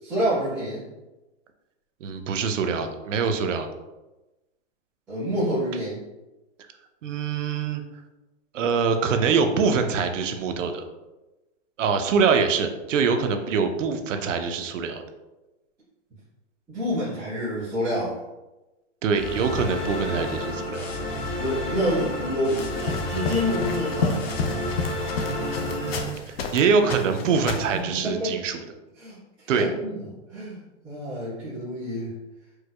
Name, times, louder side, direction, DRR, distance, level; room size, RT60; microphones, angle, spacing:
voice 1, 0.0-0.8 5.1-6.0 16.7-18.2 21.4-24.2 28.0-28.3 29.0-30.0 30.3-32.1, equal, ahead, -17 dB, 0.4 m, -28 dB
voice 2, 2.0-3.7 7.0-7.8 8.5-10.8 11.8-15.0 19.0-20.9 25.3-28.6 29.5-29.7, right 5 dB, 85° right, 6 dB, 0.6 m, -24 dB
sound 1, 19.1-26.0, left 1 dB, 85° left, 1.2 m, -30 dB
sound 2, 22.6-26.6 26.9-27.8, left 4 dB, 55° left, 0.4 m, -30 dB
4.5 x 2.2 x 2.2 m, 1.1 s
hypercardioid pair, 175°, 37 cm